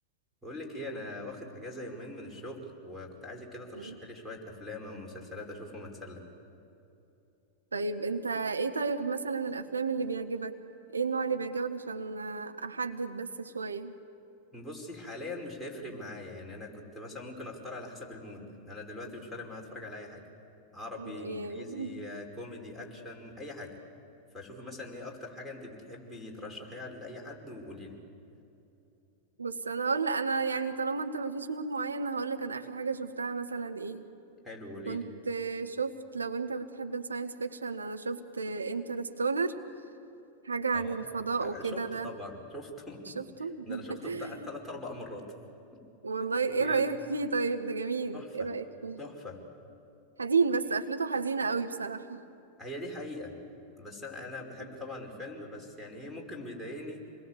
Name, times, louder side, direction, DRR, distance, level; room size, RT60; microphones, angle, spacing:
voice 1, 0.4-6.2 14.5-20.2 20.7-23.8 24.3-28.0 34.4-35.0 40.7-40.9 41.4-45.3 45.7-45.8 46.6-46.9 48.1-48.5 49.0-49.4 52.6-53.3 53.8-57.0, left 2 dB, ahead, -3 dB, 5.1 m, -42 dB
voice 2, 7.7-10.5 10.9-13.9 21.0-22.0 29.4-34.0 34.9-39.5 40.4-42.1 43.1-44.5 46.0-49.0 50.2-52.2, right 4 dB, 75° right, 6 dB, 1.3 m, -32 dB
26.5 x 21.5 x 8.2 m, 2.9 s
figure-of-eight pair, 90°, 0 cm